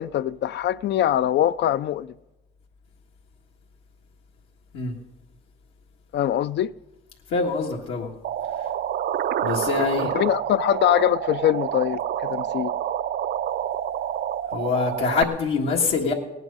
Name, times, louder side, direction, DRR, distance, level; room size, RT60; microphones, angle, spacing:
voice 1, 0.0-2.1 6.1-6.7 10.0-12.7, left 11 dB, 65° left, 0.4 m, -23 dB
voice 2, 7.3-8.1 9.4-10.1 14.5-16.1, left 5 dB, 85° left, 1.8 m, -24 dB
sound 1, 8.2-15.2, right 10 dB, 55° right, 0.5 m, -28 dB
17.5 x 9.3 x 5.4 m
cardioid pair, 90°, 20 cm